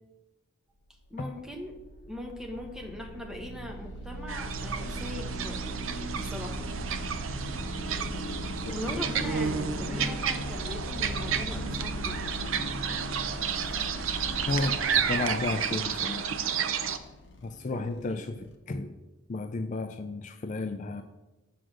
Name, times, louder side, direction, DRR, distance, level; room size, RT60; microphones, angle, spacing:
sound 1, 1.1-18.5, equal, 60° left, 1.0 m, -38 dB
voice 1, 1.1-1.7 2.1-5.8 6.1-6.6 8.7-12.4 17.7-18.2, left 1 dB, 5° right, 1 dB, 1.2 m, -40 dB
sound 2, 4.3-17.0, right 7 dB, 85° right, 0.6 m, -32 dB
voice 2, 14.5-16.4 17.4-18.3 18.7-18.9 19.3-21.0, left 3 dB, 40° left, 8 dB, 0.4 m, -32 dB
7.8 x 5.0 x 6.3 m, 1.1 s
head